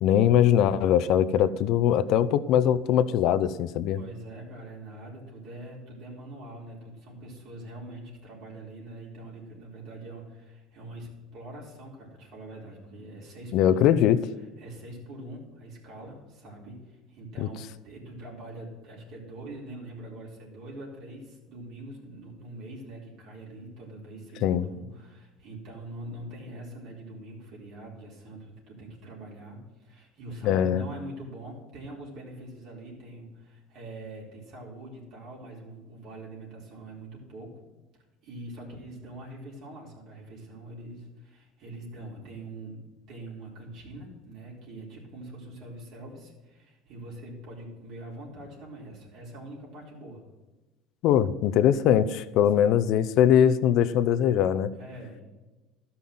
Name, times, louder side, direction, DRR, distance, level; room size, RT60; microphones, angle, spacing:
voice 1, 0.0-4.0 13.5-14.2 17.4-17.5 24.4-24.7 30.4-30.8 51.0-54.7, left 10 dB, 65° left, 15 dB, 0.6 m, -21 dB
voice 2, 3.9-13.9 14.6-37.6 38.2-50.2 52.6-52.7 54.7-55.2, right 1 dB, 60° right, -3 dB, 4.3 m, -43 dB
12.5 x 5.7 x 7.8 m, 1.2 s
supercardioid pair, 110°, 0 cm